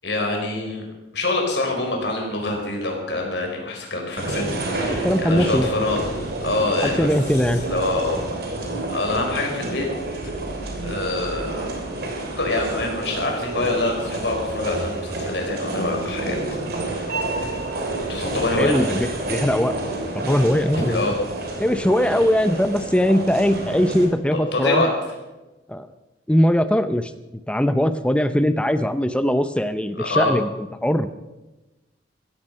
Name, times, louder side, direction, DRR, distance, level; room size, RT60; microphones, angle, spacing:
voice 1, 0.0-0.9 1.1-6.1 6.4-7.1 7.5-8.2 8.9-9.8 10.2-10.3 10.8-11.8 12.4-16.4 16.8-17.6 18.1-18.8 20.8-21.2 24.3-24.9 30.0-30.3, left 2 dB, 65° left, 1 dB, 4.7 m, -25 dB
sound 1, 4.2-24.1, right 2 dB, 55° right, 3.3 m, -29 dB
voice 2, 4.8-5.7 6.8-7.6 18.6-19.8 20.1-21.0 21.6-24.8 25.7-25.9 26.3-27.1 27.5-30.5 30.8-31.1, equal, 5° left, 11 dB, 0.5 m, -20 dB
15.0 x 15.0 x 5.5 m, 1.1 s
head